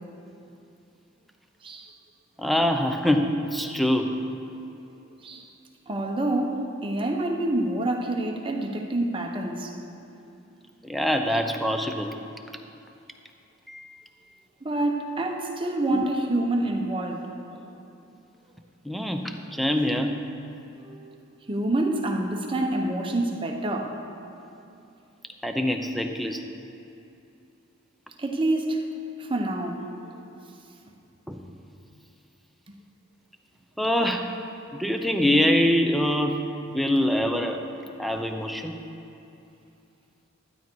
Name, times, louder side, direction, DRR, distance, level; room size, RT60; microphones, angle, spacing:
voice 1, 2.4-4.2 10.8-12.2 13.7-14.0 15.9-16.0 18.8-20.2 25.4-26.4 31.3-31.4 33.8-34.3 34.7-37.6 38.0-38.8, left 1 dB, ahead, 4 dB, 0.6 m, -24 dB
voice 2, 5.9-9.7 14.6-17.3 20.8-21.1 21.5-24.0 28.2-28.8 29.2-29.8, right 1 dB, 25° right, 2 dB, 1.0 m, -27 dB
12.0 x 9.5 x 4.6 m, 2.7 s
head